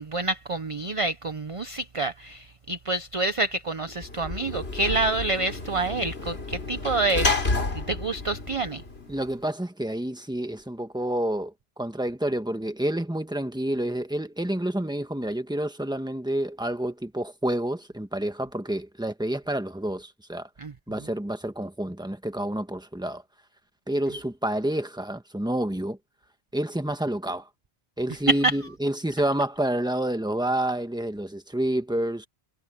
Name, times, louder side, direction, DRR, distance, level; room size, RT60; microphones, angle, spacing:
voice 1, 0.0-7.3 7.7-8.8 20.6-20.7, right 2 dB, 35° right, 0.8 m, -28 dB
Sliding door / Slam, 3.9-9.3, left 3 dB, 75° left, 3.4 m, -30 dB
voice 2, 9.1-11.5 11.8-20.5 20.9-23.2 23.9-26.0 26.5-27.5 28.0-32.3, right 1 dB, 5° right, 1.5 m, -29 dB
omnidirectional pair, 1.1 m